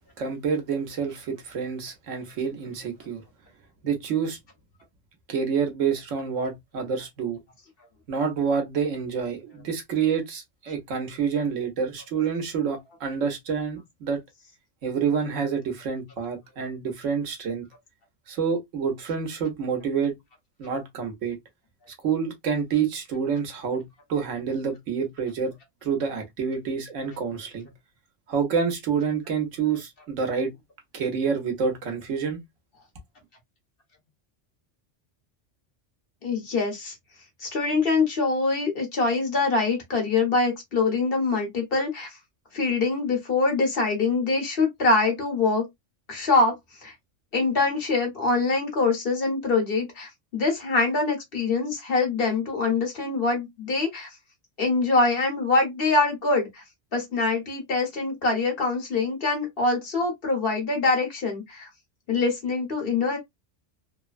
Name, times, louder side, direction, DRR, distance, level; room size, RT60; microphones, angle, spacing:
voice 1, 0.2-3.2 3.8-4.4 5.3-7.4 8.1-14.2 14.8-17.7 18.3-20.2 20.6-21.4 22.0-25.5 25.8-27.7 28.3-30.5 30.9-32.4, right 6 dB, 85° right, 1.2 m, -28 dB
voice 2, 36.2-36.9 37.4-42.2 42.5-45.6 46.1-46.5 46.8-46.9 47.3-54.1 54.6-56.6 56.9-61.7 62.1-63.2, left 3 dB, 50° left, 1.3 m, -24 dB
3.2 x 2.1 x 2.4 m
omnidirectional pair, 1.3 m